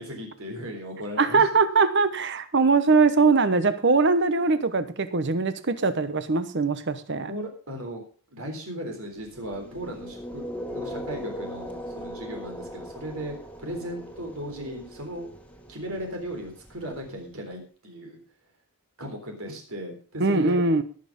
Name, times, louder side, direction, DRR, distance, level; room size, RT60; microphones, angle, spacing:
voice 1, 0.0-1.5 7.3-8.0 8.3-10.4 10.7-15.3 15.7-18.2 19.0-20.6, equal, 70° right, 3.9 m, -36 dB
voice 2, 1.2-7.3 20.2-20.8, right 4 dB, 50° right, 1.0 m, -21 dB
sound 1, 9.2-17.3, equal, 5° left, 1.7 m, -39 dB
18.0 x 6.5 x 5.2 m
head